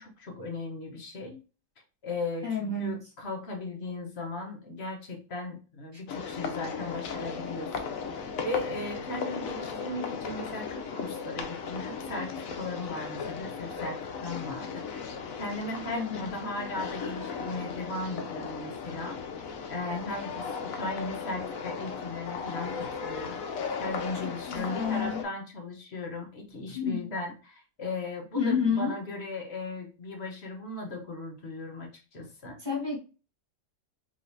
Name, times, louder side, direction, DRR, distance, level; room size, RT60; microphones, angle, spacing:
voice 1, 0.0-1.4 2.0-7.8 8.4-14.7 15.4-19.2 19.7-23.4 23.8-32.6, left 2 dB, 55° left, 2 dB, 1.2 m, -37 dB
voice 2, 2.4-3.0 15.9-16.2 24.2-25.2 26.7-27.0 28.3-28.9 32.6-33.0, left 5 dB, 20° right, -3 dB, 1.1 m, -29 dB
sound 1, 6.1-25.2, left 5 dB, 90° left, 1.1 m, -36 dB
5.0 x 3.0 x 2.6 m, 0.34 s
omnidirectional pair, 1.4 m